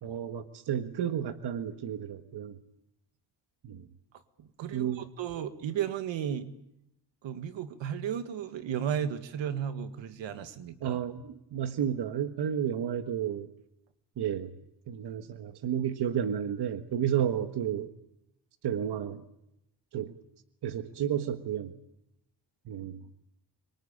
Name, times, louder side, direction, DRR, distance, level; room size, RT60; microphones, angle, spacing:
voice 1, 0.0-2.6 3.6-3.9 4.7-5.1 10.8-13.5 14.2-14.5 14.9-17.9 18.6-19.2 19.9-20.1 20.6-21.7 22.7-23.0, right 9 dB, 60° right, 9 dB, 1.5 m, -32 dB
voice 2, 4.4-6.5 7.2-11.0, right 9 dB, 80° right, 10 dB, 1.9 m, -34 dB
26.0 x 23.0 x 8.8 m, 0.84 s
cardioid pair, 130°, 44 cm